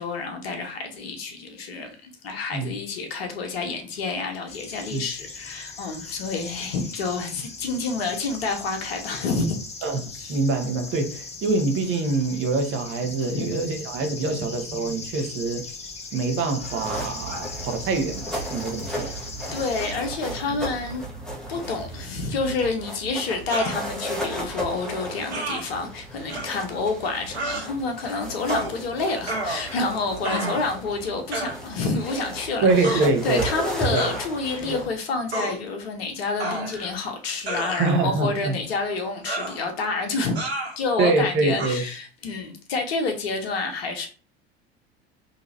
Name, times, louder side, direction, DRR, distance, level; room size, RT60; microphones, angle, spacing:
voice 1, 0.0-9.6 10.1-10.4 13.3-13.6 14.3-14.4 18.9-19.2 19.5-21.0 21.5-40.5 40.8-44.1, left 3 dB, 70° left, 0.9 m, -28 dB
sound 1, 4.5-19.9, left 4 dB, 20° left, 0.7 m, -39 dB
voice 2, 9.8-15.6 16.1-19.2 32.6-33.5 33.9-34.1 37.8-38.5 41.0-41.9, right 3 dB, 40° right, 0.9 m, -25 dB
sound 2, 16.6-34.9, right 1 dB, ahead, 1.3 m, -35 dB
sound 3, 23.5-23.8 25.3-25.6 26.3-26.5 27.3-27.7 28.5-28.8 29.3-29.9 30.2-30.7 31.3-31.6 32.8-33.0 34.0-34.2 35.3-35.6 36.4-36.9 37.5-38.1 39.3-39.6 40.4-40.8 41.6-41.7, right 2 dB, 85° right, 0.9 m, -30 dB
3.9 x 2.8 x 2.7 m
figure-of-eight pair, 70°, 31 cm